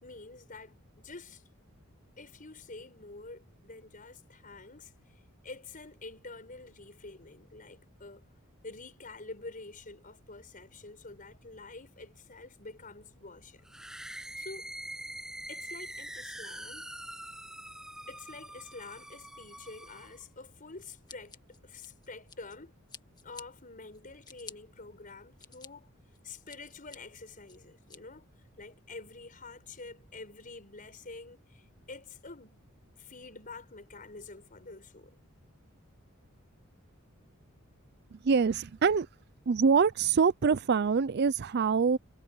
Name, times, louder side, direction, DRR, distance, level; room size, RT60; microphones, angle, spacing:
voice 1, 0.0-1.4 2.2-4.9 5.4-8.3 8.6-13.6 14.3-14.7 15.5-16.9 18.1-22.8 23.2-25.9 26.2-28.3 28.6-32.6 33.0-35.2, left 3 dB, 40° left, 5.2 m, -47 dB
sound 1, 13.6-20.2, right 1 dB, 5° right, 0.8 m, -44 dB
Scissors, 21.1-22.6 22.9-23.4 23.9-24.5 25.1-25.7 26.1-27.0 27.5-28.0, left 5 dB, 20° left, 1.8 m, -49 dB
voice 2, 38.2-39.1 39.5-42.0, right 5 dB, 50° right, 0.4 m, -25 dB
head